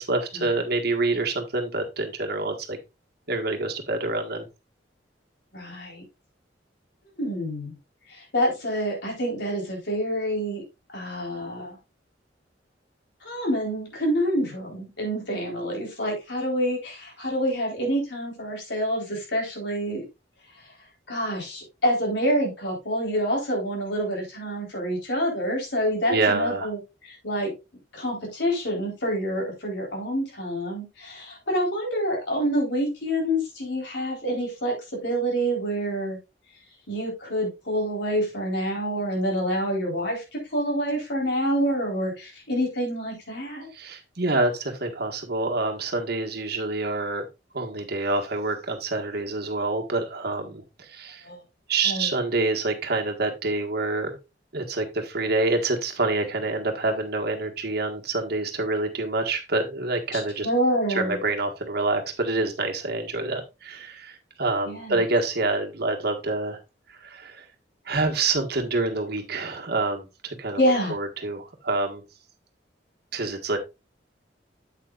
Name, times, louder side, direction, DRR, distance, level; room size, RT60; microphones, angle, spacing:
voice 1, 0.0-2.8 3.3-4.5 26.1-26.7 43.7-47.2 47.5-51.3 51.7-54.2 54.5-60.5 60.9-66.6 67.0-67.4 67.8-70.6 70.9-72.0 73.1-73.6, right 3 dB, 60° right, 3 dB, 1.6 m, -27 dB
voice 2, 5.5-6.0 7.2-7.8 8.1-10.6 10.9-11.8 13.2-20.0 21.1-27.5 27.9-34.7 35.0-36.2 36.9-43.7 51.2-51.4 51.8-52.1 60.1-61.2 64.6-65.0 70.6-71.0, equal, 70° left, 0 dB, 4.1 m, -27 dB
8.4 x 8.2 x 2.5 m, 0.25 s
head